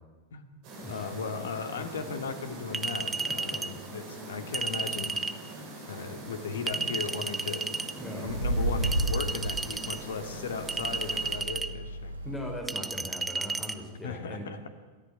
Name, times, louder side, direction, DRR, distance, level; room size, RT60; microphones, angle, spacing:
sound 1, 0.6-11.3, right 1 dB, 45° right, 7.7 m, -43 dB
voice 1, 0.9-5.2 5.9-7.7 8.1-12.1 14.0-14.7, left 5 dB, 65° left, 9 dB, 2.3 m, -36 dB
Chink clink, 2.7-3.7 4.5-5.4 6.7-7.9 8.8-10.0 10.7-11.7 12.7-13.8, right 3 dB, 10° right, 1.1 m, -33 dB
sound 2, 6.7-7.1 8.2-12.6, right 1 dB, 80° right, 1.3 m, -33 dB
voice 2, 7.9-8.3 12.2-14.5, left 1 dB, 10° left, 1 dB, 4.4 m, -39 dB
27.5 x 14.0 x 9.8 m, 1.3 s
figure-of-eight pair, 90°, 0 cm